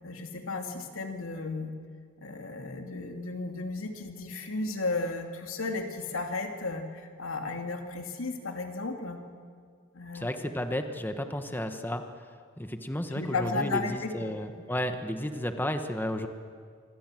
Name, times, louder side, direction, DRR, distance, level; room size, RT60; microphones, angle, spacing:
voice 1, 0.0-1.7 2.2-9.2 9.9-10.3 13.1-14.3, left 3 dB, 85° left, 4 dB, 2.6 m, -34 dB
voice 2, 10.1-12.0 12.6-16.3, left 1 dB, 10° left, 7 dB, 1.1 m, -32 dB
27.0 x 23.5 x 7.7 m, 2.1 s
head